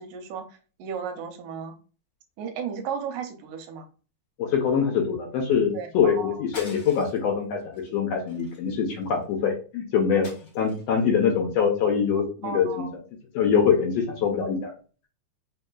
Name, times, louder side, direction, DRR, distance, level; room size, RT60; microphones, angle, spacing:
voice 1, 0.0-1.8 2.4-3.9 5.7-6.4 12.4-12.9, right 7 dB, 90° right, 6 dB, 2.1 m, -34 dB
voice 2, 4.4-12.9 13.3-14.7, left 6 dB, 75° left, 0 dB, 1.7 m, -24 dB
sound 1, 6.5-7.3 7.7-7.9 8.3-9.2 10.2-11.0, left 2 dB, 40° left, 1.4 m, -44 dB
4.7 x 2.7 x 2.3 m, 0.36 s
omnidirectional pair, 3.4 m